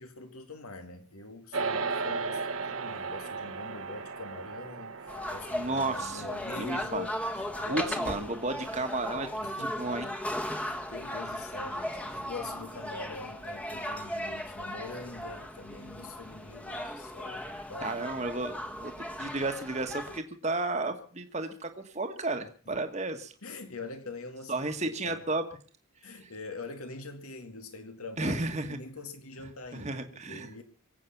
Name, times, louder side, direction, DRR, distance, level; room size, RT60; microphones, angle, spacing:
voice 1, 0.0-8.4 9.4-9.9 10.6-17.9 23.4-24.7 25.0-25.2 26.0-28.3 28.6-30.6, left 3 dB, 90° left, 2.3 m, -44 dB
sound 1, 1.5-11.0, right 4 dB, 70° right, 1.4 m, -38 dB
sound 2, 5.1-20.2, left 1 dB, 5° left, 1.2 m, -37 dB
voice 2, 5.5-6.3 6.5-7.1 7.7-9.3 9.6-10.1 17.8-18.9 19.2-23.3 24.5-25.4 26.0-26.3 28.2-28.8 29.7-30.5, right 2 dB, 30° right, 1.4 m, -33 dB
24.0 x 8.4 x 5.9 m
head